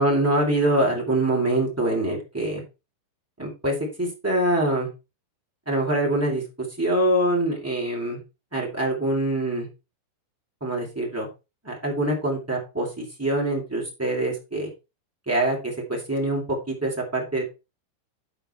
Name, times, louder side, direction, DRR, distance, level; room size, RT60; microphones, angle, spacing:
voice 1, 0.0-2.6 3.4-4.9 5.6-6.4 6.8-8.2 8.5-9.7 10.6-11.3 11.6-14.7 15.2-17.4, right 1 dB, 10° right, -3 dB, 0.7 m, -24 dB
11.5 x 5.0 x 4.3 m, 0.28 s
omnidirectional pair, 5.4 m